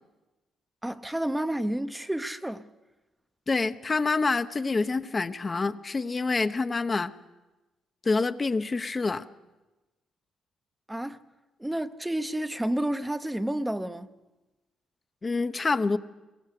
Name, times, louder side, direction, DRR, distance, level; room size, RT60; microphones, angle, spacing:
voice 1, 0.8-2.7 10.9-11.2 11.6-14.1, right 1 dB, 10° right, 0.8 m, -30 dB
voice 2, 3.5-7.1 8.0-9.2 15.2-16.0, left 3 dB, 30° left, 0.8 m, -27 dB
22.0 x 18.5 x 6.6 m
cardioid pair, 90°, 0 cm